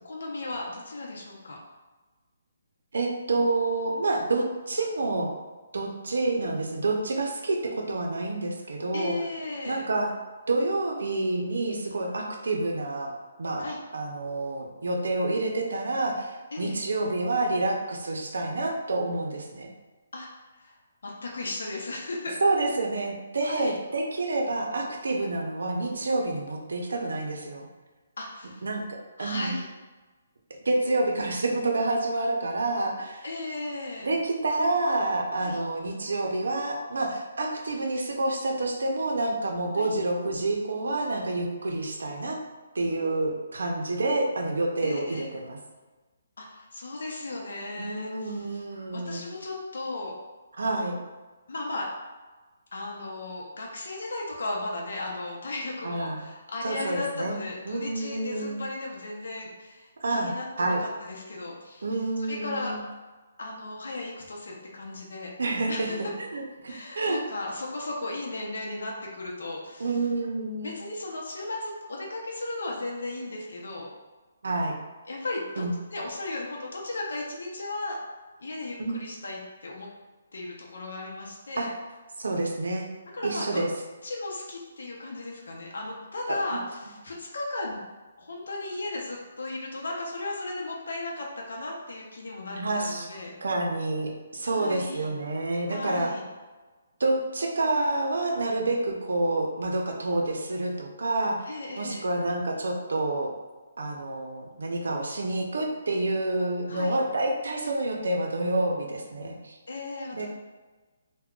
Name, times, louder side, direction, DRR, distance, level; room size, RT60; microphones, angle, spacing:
voice 1, 0.0-1.6 8.9-9.9 13.6-13.8 16.5-16.8 20.1-20.3 20.6-20.7 21.0-22.4 23.4-23.7 28.2-28.6 29.2-29.7 33.2-34.1 35.4-35.6 39.8-39.9 44.8-45.3 46.4-48.6 48.9-50.1 51.5-51.9 52.7-62.8 63.4-65.3 65.7-66.0 66.7-69.9 70.6-73.9 75.1-75.6 75.9-78.0 78.4-79.9 80.3-81.7 83.1-83.6 84.0-87.8 88.2-93.3 94.4-95.1 95.7-96.2 101.5-102.0 106.7-107.0 109.7-110.3, left 2 dB, 75° left, -2 dB, 0.6 m, -36 dB
voice 2, 2.9-5.3 5.7-9.1 9.7-10.1 10.5-19.7 22.4-27.7 28.6-28.8 29.2-29.6 30.7-33.3 34.0-42.4 42.7-45.6 47.7-49.2 50.6-51.0 55.8-56.2 56.6-57.4 57.7-58.6 60.0-60.3 60.6-60.8 61.8-62.8 65.4-65.9 66.3-67.2 69.8-70.7 74.4-74.8 75.6-75.7 78.8-79.0 81.6-81.7 82.2-82.9 83.2-83.7 86.3-86.6 92.5-93.1 93.4-96.1 97.0-103.3 103.8-109.6 110.1-110.3, right 2 dB, 85° right, 1 dB, 0.5 m, -28 dB
2.3 x 2.1 x 3.6 m, 1.3 s
hypercardioid pair, 175°, 0 cm